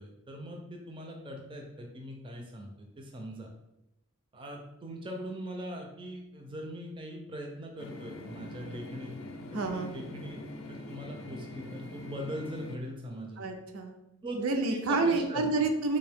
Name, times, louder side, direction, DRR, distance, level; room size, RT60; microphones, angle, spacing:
voice 1, 0.0-3.5 4.3-10.4 10.7-13.4 14.2-14.4 14.7-15.4, equal, 25° right, 2 dB, 0.4 m, -41 dB
sound 1, 7.8-12.8, left 1 dB, 65° left, 0.4 m, -44 dB
voice 2, 9.5-10.0 13.4-13.9 14.4-16.0, right 3 dB, 80° right, 4 dB, 0.5 m, -29 dB
3.6 x 2.7 x 3.4 m, 0.91 s
head